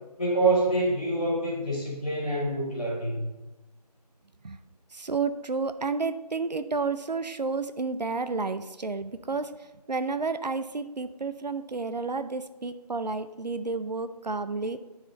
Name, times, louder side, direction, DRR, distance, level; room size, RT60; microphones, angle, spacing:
voice 1, 0.2-3.3, right 2 dB, 10° left, -16 dB, 1.9 m, -26 dB
voice 2, 4.9-9.5 9.9-14.8, right 4 dB, 80° right, 11 dB, 0.6 m, -31 dB
10.5 x 4.9 x 4.0 m, 1.1 s
figure-of-eight pair, 175°, 21 cm